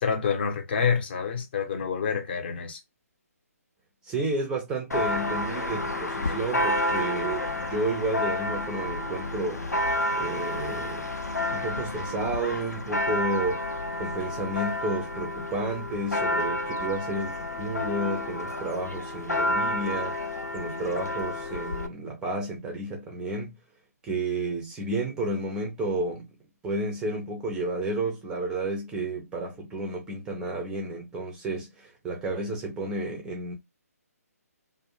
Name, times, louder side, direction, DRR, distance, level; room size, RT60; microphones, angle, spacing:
voice 1, 0.0-2.8, left 6 dB, 40° left, 0.6 m, -27 dB
voice 2, 4.0-9.6 10.1-13.6 14.0-20.2 20.5-23.5 24.0-26.2 26.6-33.5, right 2 dB, 10° right, 0.4 m, -31 dB
Church bell, 4.9-21.9, left 1 dB, 85° left, 0.5 m, -30 dB
2.5 x 2.0 x 2.8 m
figure-of-eight pair, 140°, 9 cm